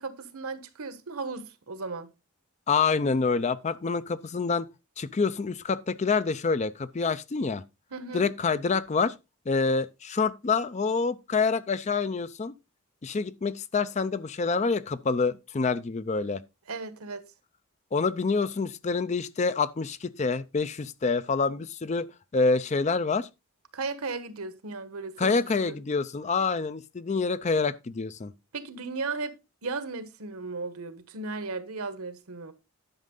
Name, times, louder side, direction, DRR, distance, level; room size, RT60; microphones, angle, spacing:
voice 1, 0.0-2.1 7.9-8.2 16.7-17.2 23.7-25.3 25.7-25.8 28.5-29.4 29.6-32.5, right 3 dB, 85° right, 1.2 m, -35 dB
voice 2, 2.7-4.7 5.0-7.6 8.1-9.1 9.5-12.5 13.0-16.4 17.9-22.1 22.3-23.3 25.2-28.3, left 4 dB, 30° left, 0.4 m, -27 dB
11.0 x 6.4 x 3.8 m
head